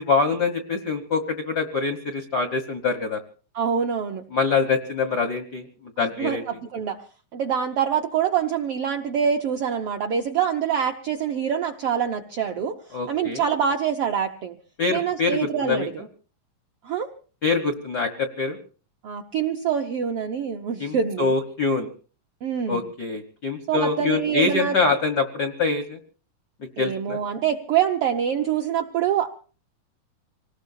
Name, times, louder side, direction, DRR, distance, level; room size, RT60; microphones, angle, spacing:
voice 1, 0.0-3.2 4.3-5.7 6.0-6.4 12.9-13.4 14.8-15.9 17.4-18.6 20.8-21.9 22.7-26.0 26.8-27.2, left 4 dB, 65° left, 8 dB, 0.9 m, -24 dB
voice 2, 3.5-4.2 6.2-7.0 7.3-12.8 13.1-14.6 14.9-16.0 16.8-17.1 19.0-21.3 22.4-22.9 23.7-24.7 26.8-29.3, right 8 dB, 75° right, 4 dB, 1.3 m, -25 dB
26.5 x 19.0 x 2.7 m, 0.39 s
omnidirectional pair, 3.9 m